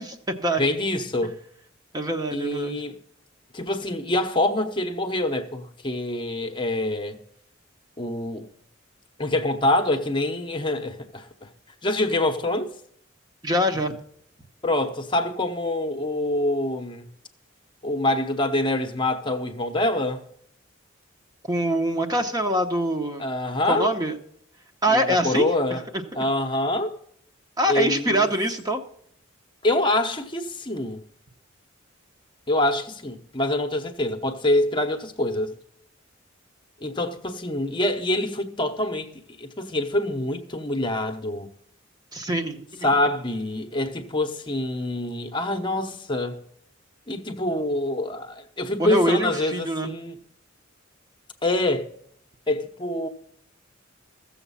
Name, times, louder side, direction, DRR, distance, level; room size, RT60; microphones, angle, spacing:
voice 1, 0.0-0.6 1.9-2.8 13.4-14.0 21.5-23.2 23.7-24.1 24.8-25.5 27.6-28.8 42.1-42.6 48.8-49.9, equal, 20° right, 0.9 m, -24 dB
voice 2, 0.6-1.4 2.3-3.0 3.5-7.2 8.0-8.5 9.2-11.5 11.8-12.7 14.6-17.1 17.8-20.2 23.2-24.0 24.9-25.8 26.1-27.0 27.7-28.3 29.6-31.0 32.5-35.5 36.8-39.1 39.4-41.5 42.8-46.4 47.1-50.2 51.4-51.9 52.5-53.1, left 1 dB, 25° left, 0.9 m, -25 dB
14.5 x 7.2 x 5.6 m
head